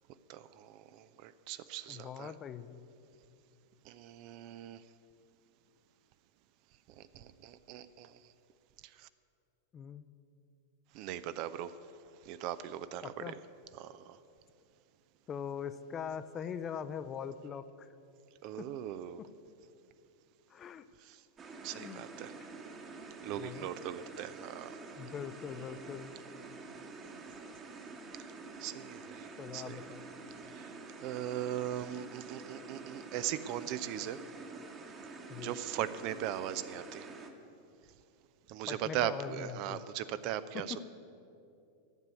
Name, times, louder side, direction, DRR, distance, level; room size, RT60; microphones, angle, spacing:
voice 1, 0.3-2.3 3.8-4.8 7.0-8.2 8.8-9.1 10.9-11.7 12.2-13.3 13.7-14.2 18.4-19.2 21.0-21.2 21.6-22.3 23.2-24.8 28.6-29.8 30.4-34.2 35.4-37.1 38.5-40.8, right 11 dB, 45° right, 13 dB, 0.5 m, -39 dB
voice 2, 1.9-2.9 9.7-10.0 13.0-13.4 15.3-17.9 18.6-18.7 20.5-20.8 21.7-22.0 23.4-23.7 25.0-26.2 29.4-30.0 35.3-35.5 38.7-39.8 40.7-40.8, left 7 dB, 25° left, 13 dB, 0.6 m, -42 dB
sound 1, 21.4-37.3, right 3 dB, 25° right, 1.3 m, -48 dB
11.0 x 8.2 x 9.4 m, 2.6 s
figure-of-eight pair, 90°, 0 cm